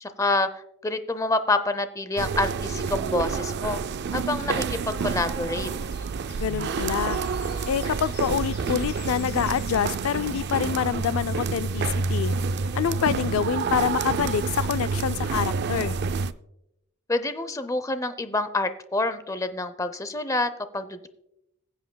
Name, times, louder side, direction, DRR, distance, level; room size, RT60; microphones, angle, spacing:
voice 1, 0.0-3.8 4.1-5.7 17.1-21.1, left 2 dB, 15° left, 0.6 m, -27 dB
sound 1, 2.2-16.3, right 5 dB, 55° right, 0.4 m, -28 dB
sound 2, 5.5-11.1, left 4 dB, 55° left, 2.8 m, -47 dB
voice 2, 6.4-7.2 7.7-12.4 12.7-16.0, left 8 dB, 85° left, 0.3 m, -26 dB
21.0 x 7.8 x 2.2 m
head